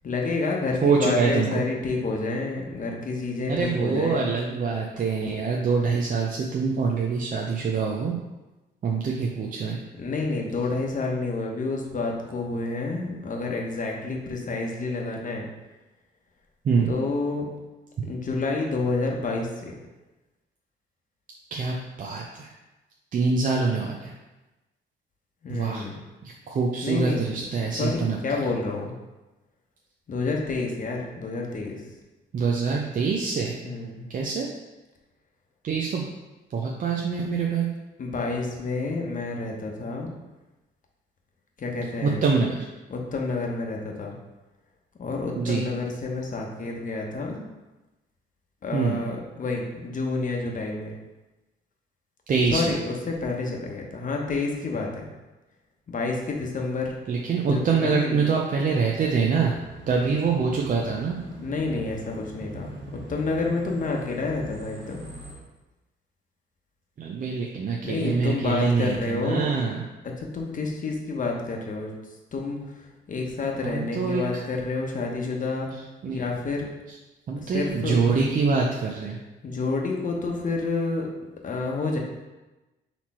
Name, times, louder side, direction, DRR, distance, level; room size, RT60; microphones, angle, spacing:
voice 1, 0.0-4.3 10.0-15.5 16.9-17.5 18.0-19.8 25.4-26.0 26.8-27.4 27.8-28.9 30.1-31.8 33.6-34.0 38.0-40.1 41.6-42.2 42.9-44.1 45.0-47.4 48.6-50.9 52.5-55.1 55.9-56.9 57.4-58.3 61.4-65.0 67.8-69.4 70.0-71.9 72.3-72.6 73.1-75.7 76.1-76.6 77.4-78.0 79.4-81.1 81.4-82.0, left 3 dB, 40° left, 0 dB, 1.0 m, -29 dB
voice 2, 0.8-1.6 3.5-8.2 8.8-9.8 16.6-16.9 21.5-22.5 23.1-24.1 25.5-25.8 26.2-28.2 32.3-33.5 34.1-34.5 35.6-36.1 36.5-37.7 42.0-42.6 45.4-45.7 48.7-49.0 52.3-52.7 57.1-59.5 59.9-61.2 67.0-69.8 73.6-74.2 76.0-76.2 77.3-79.2, right 5 dB, 45° right, -1 dB, 0.5 m, -25 dB
sound 1, 59.0-65.3, right 1 dB, 65° right, 1.6 m, -43 dB
4.2 x 3.0 x 4.2 m, 1.1 s
cardioid pair, 90°, 20 cm